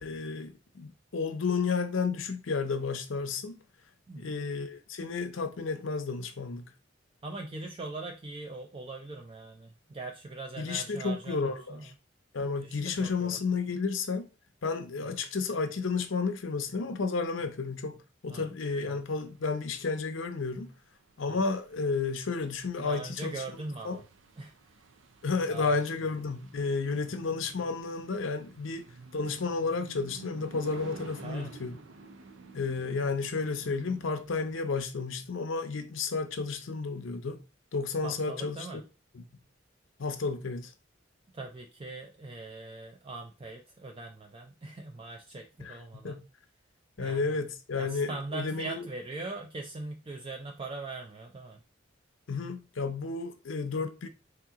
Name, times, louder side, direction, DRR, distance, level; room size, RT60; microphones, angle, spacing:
voice 1, 0.0-3.6 4.2-6.7 10.6-11.9 12.3-14.3 14.6-18.0 18.2-20.7 21.2-23.4 23.8-24.0 25.2-28.9 29.1-31.8 32.5-37.4 37.7-38.6 39.1-39.2 40.0-40.7 45.6-46.2 47.0-48.8 52.3-54.1, left 4 dB, 90° left, 0.6 m, -32 dB
voice 2, 4.1-4.4 7.2-11.9 12.6-13.4 15.0-15.2 18.3-18.5 18.8-19.0 21.2-21.4 22.8-24.0 24.4-24.5 25.5-25.8 31.2-31.6 38.0-38.8 41.3-46.2 47.0-47.4 47.7-51.6, right 3 dB, 30° right, 0.4 m, -41 dB
sound 1, 18.7-34.6, right 3 dB, 85° right, 0.6 m, -51 dB
3.6 x 2.9 x 3.5 m
head